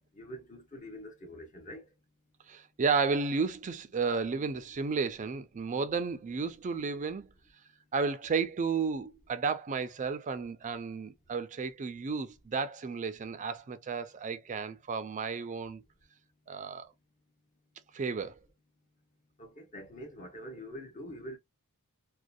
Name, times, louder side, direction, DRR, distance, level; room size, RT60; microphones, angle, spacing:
voice 1, 0.1-1.9 19.4-21.4, equal, 35° left, 0.7 m, -45 dB
voice 2, 2.5-7.3 7.9-15.8 16.5-16.9 17.9-18.3, right 5 dB, 35° right, 0.4 m, -32 dB
2.6 x 2.1 x 2.3 m
head